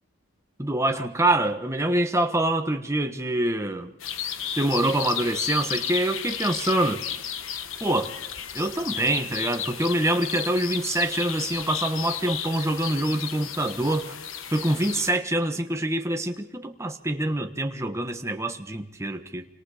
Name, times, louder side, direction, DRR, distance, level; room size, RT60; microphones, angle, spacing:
voice 1, 0.6-3.9 4.6-7.0 7.8-8.1 8.5-14.1 14.5-19.4, right 1 dB, 15° right, 5 dB, 1.3 m, -25 dB
sound 1, 4.0-15.1, left 9 dB, 65° left, 1.2 m, -33 dB
28.0 x 25.5 x 5.1 m, 0.90 s
head